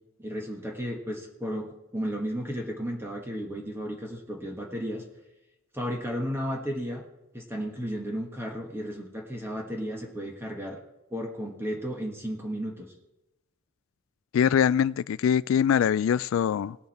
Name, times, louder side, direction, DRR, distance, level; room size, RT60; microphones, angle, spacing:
voice 1, 0.2-5.0 5.7-7.0 7.3-10.8 11.1-12.9, equal, 10° right, 0 dB, 1.5 m, -34 dB
voice 2, 14.3-16.8, left 8 dB, 75° left, 19 dB, 0.3 m, -23 dB
18.5 x 7.2 x 4.3 m, 0.95 s
head